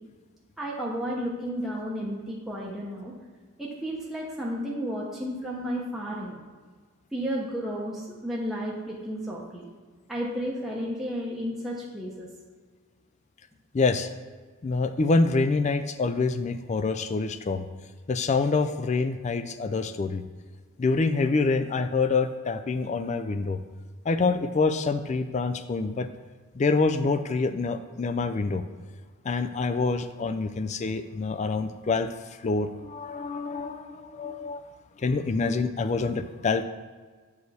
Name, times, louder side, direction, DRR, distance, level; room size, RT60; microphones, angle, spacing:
voice 1, 0.6-3.1 3.6-6.4 7.1-9.7 10.1-12.3 35.4-35.5, equal, ahead, -5 dB, 0.7 m, -32 dB
voice 2, 13.7-14.1 14.6-17.7 18.1-20.2 20.8-23.6 24.1-26.1 26.5-28.6 29.2-32.1 32.4-34.6 35.0-36.6, left 3 dB, 30° left, 10 dB, 0.3 m, -26 dB
7.9 x 4.8 x 4.1 m, 1.5 s
head